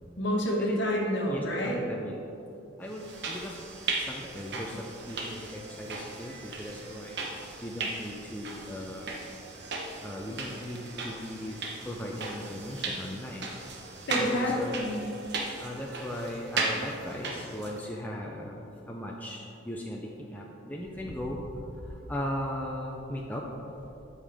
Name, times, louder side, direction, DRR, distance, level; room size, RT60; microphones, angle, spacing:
voice 1, 0.2-1.8 14.1-15.1, equal, 55° left, -1 dB, 1.4 m, -28 dB
voice 2, 1.3-2.2 2.8-3.6 4.0-4.8 5.1-7.2 7.6-9.1 10.0-11.6 11.8-13.5 14.2-14.7 15.6-18.6 18.9-23.5, equal, 10° left, -2 dB, 0.5 m, -37 dB
sound 1, 2.9-17.9, right 3 dB, 55° right, 1.0 m, -37 dB
13.0 x 5.6 x 3.5 m, 2.9 s
head